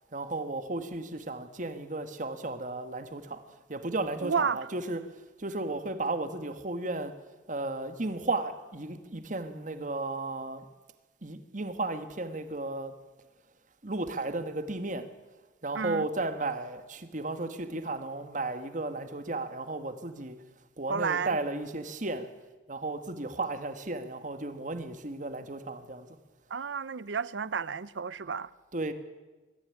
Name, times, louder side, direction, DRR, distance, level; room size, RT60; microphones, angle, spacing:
voice 1, 0.1-5.0 5.4-7.1 7.5-10.6 11.2-12.9 13.8-15.1 15.6-20.4 20.8-22.3 22.7-26.1 28.7-28.9, right 2 dB, 45° right, 10 dB, 1.6 m, -34 dB
voice 2, 4.2-4.7 15.7-16.1 20.9-21.4 26.5-28.5, right 6 dB, 85° right, 19 dB, 0.7 m, -31 dB
21.5 x 14.0 x 9.8 m, 1.2 s
head